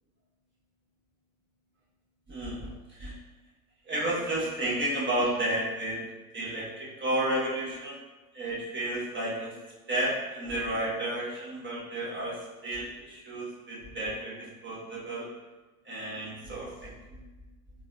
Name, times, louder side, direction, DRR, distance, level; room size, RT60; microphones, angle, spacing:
voice 1, 2.3-3.1 3.9-6.0 6.3-8.0 8.3-9.5 9.9-15.3 15.8-17.2, right 1 dB, 25° right, -6 dB, 1.4 m, -32 dB
3.8 x 2.6 x 2.7 m, 1.2 s
hypercardioid pair, 85°, 43 cm